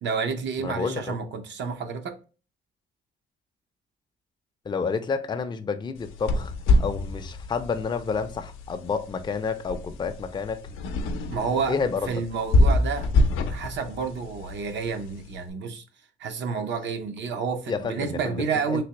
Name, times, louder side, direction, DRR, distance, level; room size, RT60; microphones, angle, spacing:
voice 1, 0.0-2.2 11.3-11.8 12.1-13.1 13.5-15.8 16.2-18.8, right 5 dB, 65° right, 0.6 m, -29 dB
voice 2, 0.6-1.2 4.7-6.5 6.8-10.6 11.7-12.1 17.7-18.8, left 5 dB, 20° left, 0.4 m, -29 dB
sound 1, 6.0-15.3, left 2 dB, 90° left, 0.5 m, -26 dB
3.3 x 2.9 x 2.9 m
cardioid pair, 90°, 20 cm